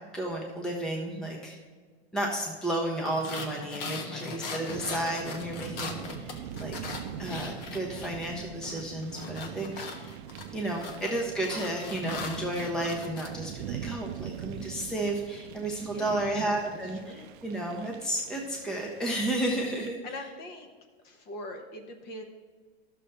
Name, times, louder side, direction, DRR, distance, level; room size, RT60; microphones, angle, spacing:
voice 1, 0.1-1.6 2.1-6.8 7.2-10.1 10.5-20.0, right 1 dB, ahead, 0 dB, 0.6 m, -32 dB
sound 1, 3.1-8.3 8.6-13.3, left 4 dB, 60° left, 1.3 m, -40 dB
voice 2, 4.1-4.5 15.8-17.3 20.0-20.7 21.0-22.2, left 2 dB, 30° left, 5 dB, 0.9 m, -43 dB
sound 2, 4.7-19.9, right 10 dB, 55° right, 0.5 m, -42 dB
11.5 x 6.6 x 3.3 m, 1.5 s
supercardioid pair, 155°, 32 cm